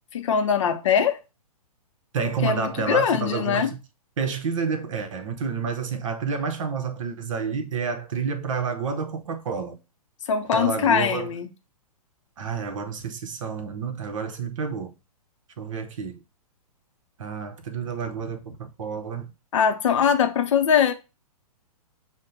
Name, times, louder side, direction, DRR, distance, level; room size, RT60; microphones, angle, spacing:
voice 1, 0.1-1.2 2.4-3.7 10.3-11.5 19.5-20.9, left 7 dB, 50° left, 0.6 m, -22 dB
voice 2, 2.1-3.8 4.2-9.8 10.5-11.3 12.4-14.9 15.6-16.2 17.2-19.3, right 5 dB, 55° right, 0.8 m, -29 dB
6.4 x 2.2 x 3.8 m
figure-of-eight pair, 115°, 20 cm